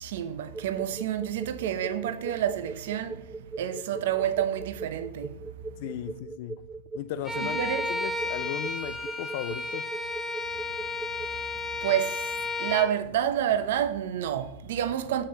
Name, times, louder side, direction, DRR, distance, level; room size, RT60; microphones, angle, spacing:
voice 1, 0.0-3.2 3.6-5.3 7.4-7.8 11.8-12.2 12.6-15.2, right 10 dB, 75° right, 0.8 m, -28 dB
sound 1, 0.5-11.3, right 4 dB, 15° right, 0.4 m, -39 dB
voice 2, 5.8-6.6 6.9-7.6 7.9-9.9, left 13 dB, 65° left, 0.3 m, -36 dB
Bowed string instrument, 7.2-13.0, left 3 dB, 10° left, 1.1 m, -33 dB
6.8 x 5.7 x 5.4 m
hypercardioid pair, 110°, 0 cm